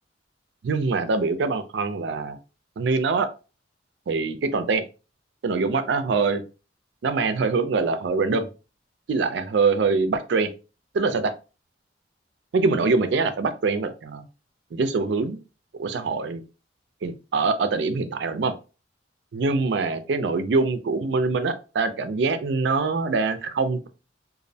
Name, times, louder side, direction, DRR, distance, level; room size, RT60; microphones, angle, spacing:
voice 1, 0.6-2.4 2.8-3.3 4.1-4.8 5.4-6.4 7.0-8.5 9.1-10.5 10.9-11.3 12.5-14.3 14.7-15.4 15.8-16.4 17.0-18.5 19.3-23.9, right 4 dB, 65° right, 9 dB, 0.4 m, -24 dB
2.5 x 2.0 x 2.6 m, 0.32 s
head